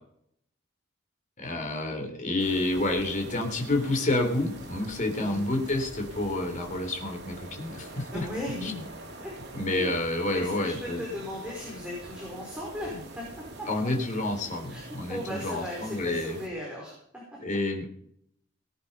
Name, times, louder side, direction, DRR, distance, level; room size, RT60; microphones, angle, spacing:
voice 1, 1.4-8.3 8.6-8.7 9.5-11.0 13.7-16.4 17.4-17.9, left 2 dB, 40° left, 4 dB, 3.7 m, -29 dB
sound 1, 2.4-16.5, right 2 dB, 60° right, 3.5 m, -44 dB
voice 2, 8.1-8.9 9.2-9.3 9.7-9.9 10.3-13.7 14.7-17.0 17.3-17.4, left 1 dB, 5° right, -4 dB, 5.1 m, -37 dB
19.5 x 9.5 x 5.5 m, 0.69 s
head